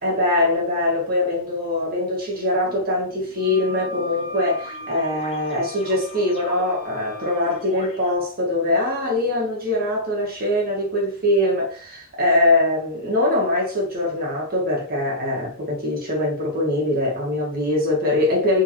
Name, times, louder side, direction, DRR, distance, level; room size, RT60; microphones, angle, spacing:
voice 1, 0.0-18.6, left 1 dB, 40° right, 1.7 m, -22 dB
sound 1, 2.7-8.2, left 2 dB, 25° left, 0.8 m, -43 dB
Wind instrument woodwind instrument, 3.4-7.7, left 1 dB, 15° right, 1.4 m, -38 dB
4.5 x 3.8 x 2.9 m
head